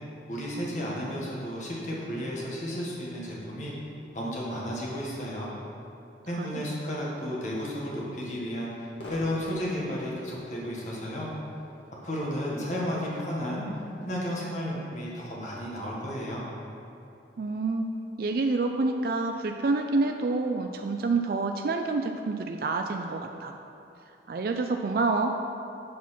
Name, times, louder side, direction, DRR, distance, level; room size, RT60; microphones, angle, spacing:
voice 1, 0.3-3.7 4.1-5.5 6.3-8.7 9.1-11.3 12.0-13.6 14.1-16.4, equal, 40° left, -4 dB, 1.5 m, -33 dB
Crowd / Fireworks, 9.0-16.3, left 1 dB, 80° left, 1.7 m, -49 dB
voice 2, 17.4-17.9 18.2-23.5 24.3-25.4, right 3 dB, 55° right, 4 dB, 0.4 m, -28 dB
8.3 x 4.4 x 5.8 m, 2.9 s
head